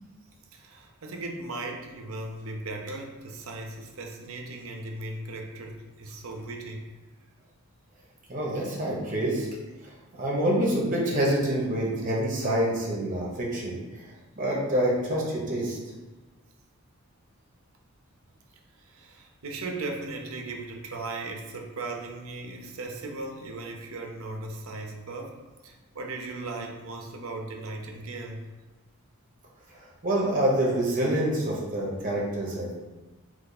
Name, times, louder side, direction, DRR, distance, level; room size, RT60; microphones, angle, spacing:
voice 1, 0.5-6.8 18.9-25.4 25.6-28.4, right 2 dB, 70° right, 2 dB, 0.6 m, -37 dB
voice 2, 8.3-9.5 10.2-13.7 14.4-15.8 30.0-32.7, right 1 dB, 35° right, -4 dB, 0.9 m, -26 dB
3.3 x 3.1 x 4.0 m, 1.2 s
head